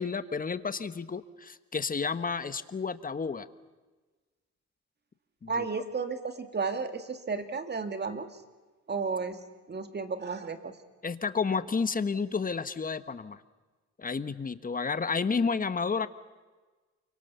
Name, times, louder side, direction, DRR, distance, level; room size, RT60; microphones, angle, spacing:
voice 1, 0.0-3.5 5.4-5.6 11.0-13.4 14.0-16.1, left 5 dB, 30° left, 12 dB, 1.3 m, -31 dB
voice 2, 5.5-8.4 8.9-10.7, right 4 dB, 35° right, 8 dB, 2.3 m, -33 dB
29.5 x 24.0 x 7.0 m, 1.3 s
cardioid pair, 90°, 30 cm